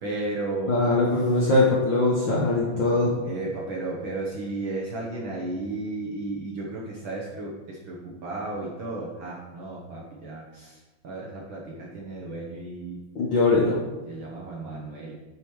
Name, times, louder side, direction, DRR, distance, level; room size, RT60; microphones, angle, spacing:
voice 1, 0.0-0.8 3.2-10.8 11.0-13.0 14.0-15.2, right 2 dB, 60° right, -4 dB, 1.4 m, -34 dB
voice 2, 0.7-3.2 13.1-13.8, left 2 dB, 60° left, -4 dB, 1.2 m, -21 dB
7.5 x 5.1 x 4.8 m, 1.2 s
omnidirectional pair, 3.3 m